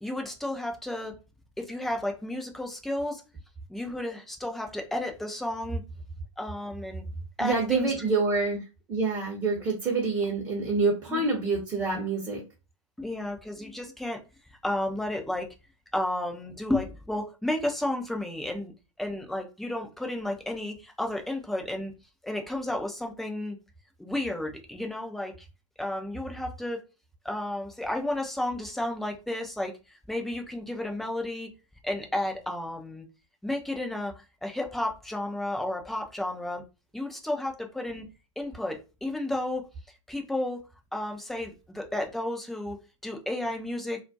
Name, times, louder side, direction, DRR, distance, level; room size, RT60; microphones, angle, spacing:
voice 1, 0.0-1.2 1.6-3.2 3.7-5.8 6.4-7.0 7.4-8.2 11.1-11.3 13.0-14.2 14.6-15.5 15.9-18.7 19.0-21.9 22.2-23.6 24.0-25.5 25.8-26.8 27.2-31.5 31.8-33.1 33.4-34.1 34.4-36.6 36.9-38.1 38.4-39.6 40.1-40.6 40.9-42.8 43.0-44.0, left 1 dB, ahead, 0.4 m, -32 dB
voice 2, 7.4-8.6 8.9-12.4, right 3 dB, 20° right, 0.7 m, -27 dB
2.3 x 2.1 x 2.6 m
figure-of-eight pair, 95°, 17 cm